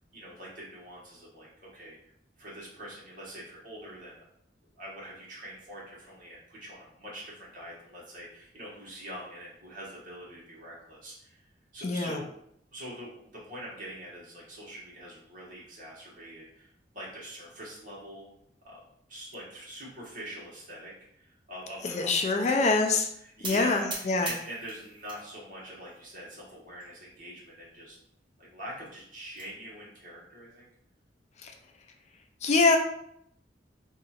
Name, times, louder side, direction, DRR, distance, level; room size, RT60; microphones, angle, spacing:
voice 1, 0.1-2.0 2.4-4.2 4.8-11.4 11.7-12.3 12.7-16.7 16.9-18.3 18.6-18.8 19.1-20.9 21.2-22.8 23.4-28.0 28.4-30.7, equal, 50° right, -5 dB, 1.3 m, -43 dB
voice 2, 11.8-12.2 21.8-23.1 23.4-24.3 31.4-31.5 32.4-32.8, left 3 dB, 40° left, 4 dB, 0.3 m, -24 dB
sound 1, 23.4-25.2 25.6-26.2 26.8-26.9 27.2-27.3 27.6-27.7 28.9-29.5, right 2 dB, 30° right, 0.7 m, -40 dB
2.8 x 2.4 x 4.2 m, 0.72 s
head